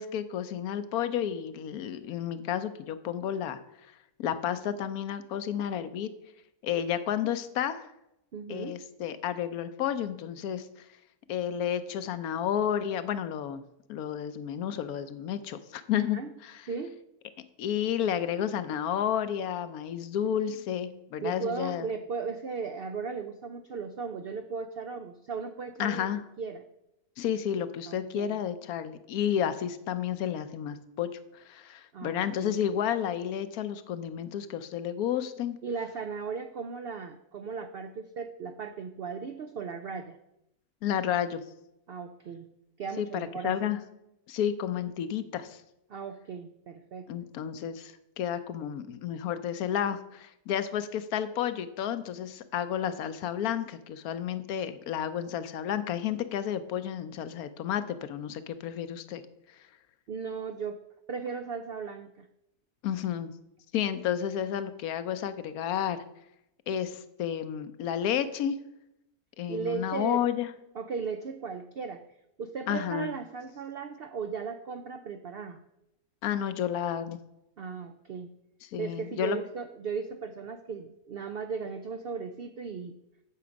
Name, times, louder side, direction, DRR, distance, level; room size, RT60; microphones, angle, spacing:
voice 1, 0.0-3.6 4.2-6.1 6.6-7.9 8.5-10.7 11.3-13.6 13.9-16.6 17.6-21.9 25.8-26.2 27.2-35.6 40.8-41.4 43.0-43.8 44.3-45.6 47.1-59.2 62.8-63.3 63.7-66.0 66.7-68.6 69.4-70.5 72.7-73.1 76.2-77.2 78.7-79.4, left 9 dB, 75° left, 12 dB, 1.1 m, -31 dB
voice 2, 8.3-8.8 15.9-16.3 16.7-16.9 21.2-26.1 26.4-26.6 27.9-28.4 31.9-32.5 35.6-40.2 41.9-42.5 42.8-43.7 45.9-47.1 60.1-60.8 61.1-62.3 69.5-70.3 70.7-72.0 72.4-75.6 77.6-78.3 78.8-82.9, right 5 dB, 75° right, 8 dB, 0.5 m, -36 dB
8.5 x 7.0 x 5.1 m, 0.84 s
omnidirectional pair, 1.6 m